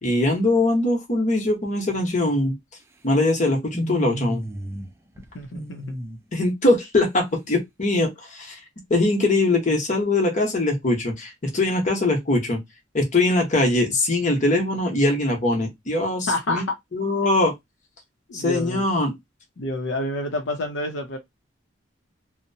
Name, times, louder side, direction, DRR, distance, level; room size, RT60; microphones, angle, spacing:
voice 1, 0.0-2.5 3.0-4.5 6.3-8.6 8.9-12.6 12.9-16.6 16.9-17.5 18.3-19.1, left 2 dB, 40° left, 0.9 m, -22 dB
sound 1, 3.7-4.9 5.2-6.2, right 1 dB, 15° right, 0.4 m, -32 dB
voice 2, 5.3-5.8 16.3-16.6 18.3-18.8 19.6-21.2, left 1 dB, 75° left, 0.6 m, -28 dB
2.7 x 2.1 x 2.6 m
head